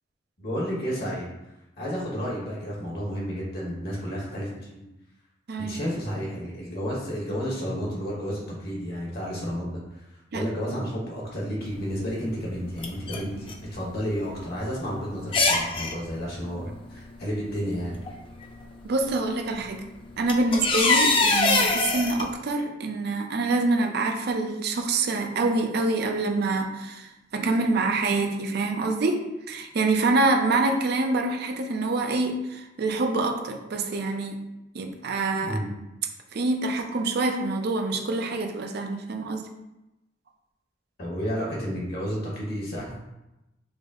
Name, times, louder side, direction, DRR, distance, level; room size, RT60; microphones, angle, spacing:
voice 1, 0.4-1.3 1.8-4.8 5.6-9.8 10.3-18.0 35.4-35.7 41.0-43.0, equal, 55° left, -4 dB, 1.3 m, -31 dB
voice 2, 5.5-5.8 10.3-10.5 18.8-19.8 20.2-34.4 34.7-35.6 36.3-39.4, right 2 dB, 60° right, 4 dB, 0.5 m, -26 dB
sound 1, 11.7-11.8 12.6-13.7 13.9-14.0 14.7-14.8 15.3-15.9 17.4-17.5 18.1-18.5 19.7-19.8 20.1-22.2, left 3 dB, 30° left, 0.4 m, -23 dB
5.0 x 2.0 x 3.7 m, 0.95 s
head